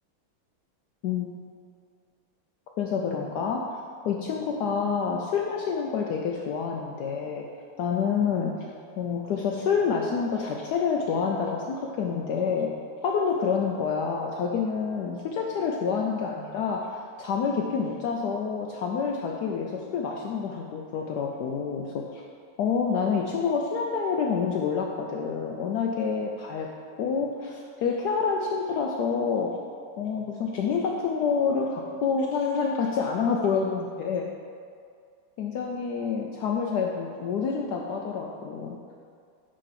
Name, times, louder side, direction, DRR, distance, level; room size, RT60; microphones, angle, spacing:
voice 1, 2.8-3.7 4.0-7.5 7.8-8.5 9.0-12.7 13.0-22.2 22.6-26.7 27.0-29.6 30.0-34.3 35.4-38.8, left 6 dB, 85° left, 0 dB, 0.9 m, -28 dB
5.3 x 5.0 x 5.7 m, 2.2 s
omnidirectional pair, 2.3 m